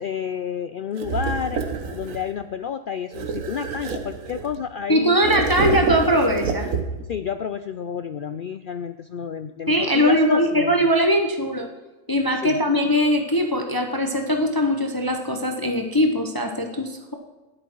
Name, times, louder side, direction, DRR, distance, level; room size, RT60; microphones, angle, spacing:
voice 1, 0.0-1.6 1.9-5.2 7.1-10.7 12.4-12.6, left 7 dB, 75° left, 10 dB, 0.4 m, -30 dB
sound 1, 1.0-2.3 3.1-4.6 5.1-7.1, right 4 dB, 70° right, 1.5 m, -28 dB
voice 2, 4.9-6.7 9.7-11.7 12.1-17.1, equal, 20° left, 3 dB, 0.9 m, -21 dB
12.5 x 11.0 x 4.6 m, 1.2 s
omnidirectional pair, 1.4 m